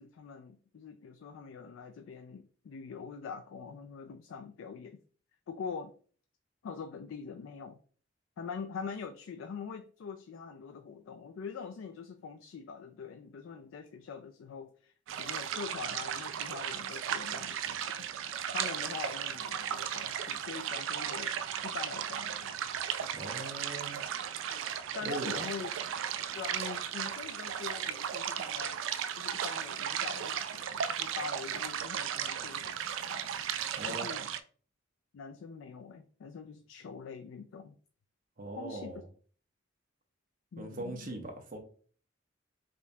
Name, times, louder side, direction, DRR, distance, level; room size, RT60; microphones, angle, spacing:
voice 1, 0.0-5.0 5.5-5.9 6.6-7.8 8.4-18.0 18.5-21.3 21.6-22.5 23.0-23.4 24.4-24.7 24.9-25.7 26.3-28.8 29.2-33.3 33.9-34.3 35.1-37.7 38.6-39.0 40.5-41.2, left 5 dB, 70° left, 0.3 m, -44 dB
sound 1, 15.1-34.4, right 9 dB, 70° right, 0.3 m, -36 dB
voice 2, 23.1-24.0 25.0-25.4 33.7-34.1 38.4-39.1 40.6-41.6, right 2 dB, 45° right, 0.9 m, -40 dB
5.0 x 2.7 x 2.3 m
head